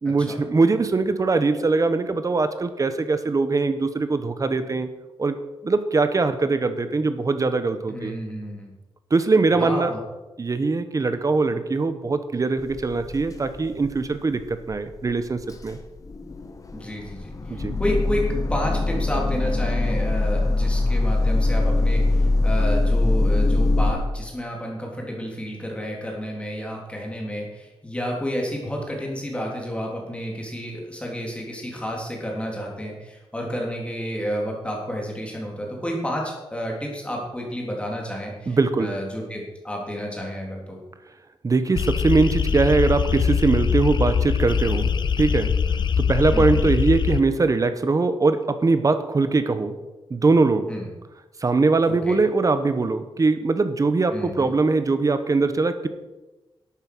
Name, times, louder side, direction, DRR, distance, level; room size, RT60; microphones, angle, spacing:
voice 1, 0.0-4.9 5.2-8.2 9.1-9.9 10.4-15.8 17.5-17.8 38.5-38.9 41.4-45.6 46.0-49.8 50.1-50.7 51.4-55.9, right 3 dB, 35° right, 10 dB, 1.1 m, -22 dB
voice 2, 7.9-8.7 9.6-10.0 16.7-18.2 18.5-40.8 46.3-46.7 50.7-50.9 51.9-52.2 54.1-54.5, equal, 10° left, -1 dB, 3.5 m, -31 dB
sound 1, 12.7-13.4 13.7-14.0 14.4-14.5 14.7-14.8 15.5-23.9, left 2 dB, 35° left, 1.3 m, -22 dB
sound 2, 41.8-47.2, left 6 dB, 50° left, 0.6 m, -22 dB
12.0 x 8.9 x 6.2 m, 1.1 s
wide cardioid pair, 130°, 10 cm